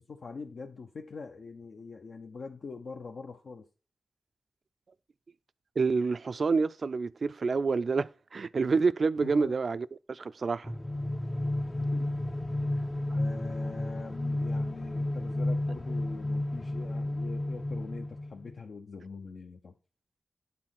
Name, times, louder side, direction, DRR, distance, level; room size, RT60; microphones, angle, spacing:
voice 1, 0.0-3.6 9.2-9.6 11.9-12.1 12.7-12.8 13.1-19.7, left 4 dB, 70° left, 0.7 m, -43 dB
voice 2, 5.8-10.7, right 4 dB, 55° right, 0.3 m, -28 dB
sound 1, 10.6-18.5, left 1 dB, 10° left, 0.4 m, -32 dB
8.6 x 4.1 x 5.8 m
wide cardioid pair, 115°, 0 cm